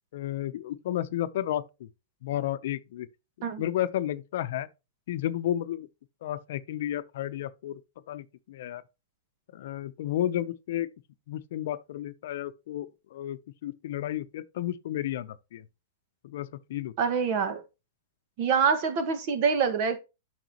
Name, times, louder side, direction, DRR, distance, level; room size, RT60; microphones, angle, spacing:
voice 1, 0.1-1.9 2.2-3.1 3.6-4.7 5.1-5.9 6.2-7.8 8.1-8.8 9.5-10.9 11.3-15.7 16.2-16.9, left 12 dB, 65° left, 0.7 m, -32 dB
voice 2, 17.0-17.6 18.4-20.0, right 6 dB, 50° right, 1.7 m, -25 dB
9.2 x 6.0 x 3.0 m
hypercardioid pair, 135°, 0 cm